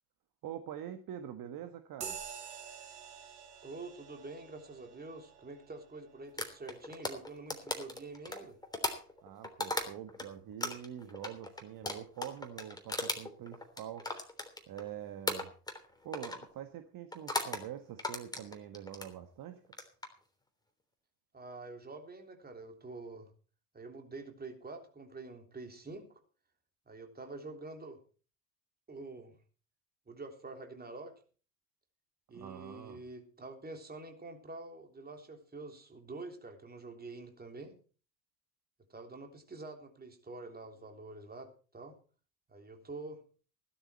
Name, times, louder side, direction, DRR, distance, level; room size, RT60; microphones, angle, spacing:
voice 1, 0.4-2.2 9.2-14.2 14.7-15.5 16.0-19.6 32.3-33.0, right 10 dB, 45° right, 8 dB, 1.5 m, -45 dB
sound 1, 2.0-9.9, right 7 dB, 80° right, 2.4 m, -50 dB
voice 2, 3.6-8.6 21.3-23.3 23.7-26.2 26.9-28.0 28.9-29.4 30.1-31.1 32.3-37.8 38.9-42.0 42.5-43.2, right 3 dB, 20° right, 4 dB, 3.5 m, -47 dB
sound 2, 6.4-10.3 10.6-14.9 15.3-15.9 16.1-16.5 17.1-17.6 18.0-19.1 19.6-20.1, left 2 dB, 10° left, 3.2 m, -37 dB
16.0 x 12.5 x 4.4 m, 0.38 s
figure-of-eight pair, 60°, 47 cm